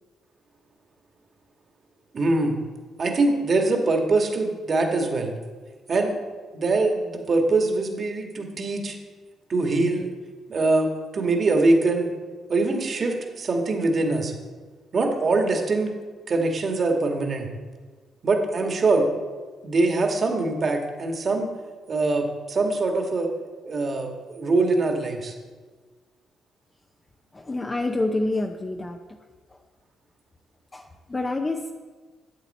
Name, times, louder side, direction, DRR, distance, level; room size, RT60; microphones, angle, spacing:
voice 1, 2.1-2.6 3.0-5.3 5.9-6.2 6.5-8.9 9.5-10.1 10.5-12.1 12.5-14.3 14.9-15.9 16.3-17.5 18.2-19.1 19.6-21.5 21.9-23.3 23.7-25.3, right 3 dB, 45° right, 3 dB, 1.7 m, -23 dB
voice 2, 27.3-29.0 30.7-31.7, left 2 dB, 20° left, 3 dB, 0.7 m, -27 dB
11.5 x 7.8 x 4.2 m, 1.4 s
cardioid pair, 90°, 0 cm